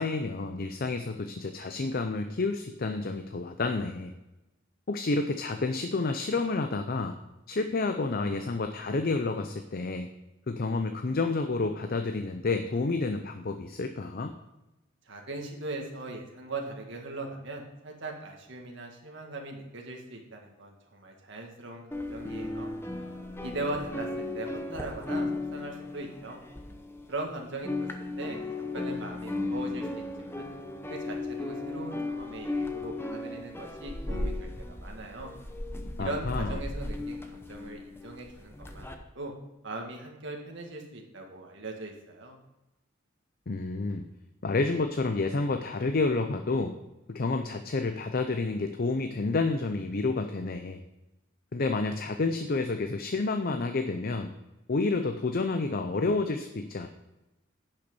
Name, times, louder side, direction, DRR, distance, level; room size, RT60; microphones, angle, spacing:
voice 1, 0.0-4.1 4.9-7.1 7.5-10.1 10.5-14.3 36.0-36.6 43.5-44.1 44.4-46.7 47.1-50.8 51.5-54.3 54.7-56.9, left 3 dB, 45° left, 6 dB, 0.6 m, -29 dB
voice 2, 15.1-22.7 23.4-26.4 27.1-27.9 28.2-30.5 30.9-35.3 36.0-39.3 39.6-42.4, right 2 dB, 65° right, 1 dB, 1.8 m, -40 dB
sound 1, 21.9-27.2 27.5-38.9, left 2 dB, 10° left, 0.8 m, -36 dB
10.5 x 5.8 x 5.3 m, 0.99 s
head